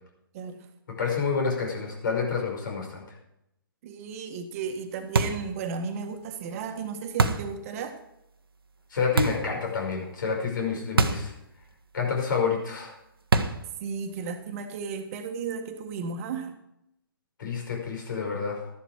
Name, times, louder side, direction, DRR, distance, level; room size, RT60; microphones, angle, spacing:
voice 1, 0.3-0.6 3.8-8.0 13.8-16.5, right 5 dB, 40° right, 6 dB, 1.5 m, -34 dB
voice 2, 0.9-3.0 8.9-11.3 11.9-13.0 17.4-18.7, left 5 dB, 60° left, 1 dB, 5.5 m, -28 dB
sound 1, 5.1-5.5 7.2-7.5 9.2-9.5 11.0-11.3 11.6-11.7 13.3-13.7, right 3 dB, 80° right, 1.2 m, -24 dB
13.5 x 11.0 x 4.7 m, 0.82 s
figure-of-eight pair, 130°, 12 cm